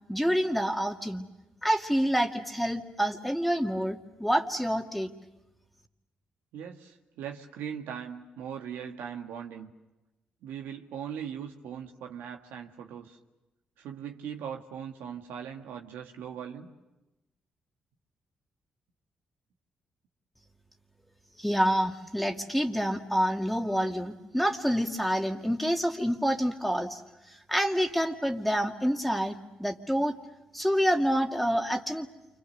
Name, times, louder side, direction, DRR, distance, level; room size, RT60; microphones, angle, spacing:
voice 1, 0.1-1.3 1.6-5.1 21.4-27.0 27.5-29.3 29.6-30.1 30.5-32.1, equal, ahead, 3 dB, 2.4 m, -27 dB
voice 2, 6.5-9.7 10.4-13.2 13.8-16.7 27.3-27.4, right 8 dB, 85° right, 3 dB, 1.7 m, -40 dB
29.5 x 26.0 x 6.8 m, 1.0 s
supercardioid pair, 60°, 3 cm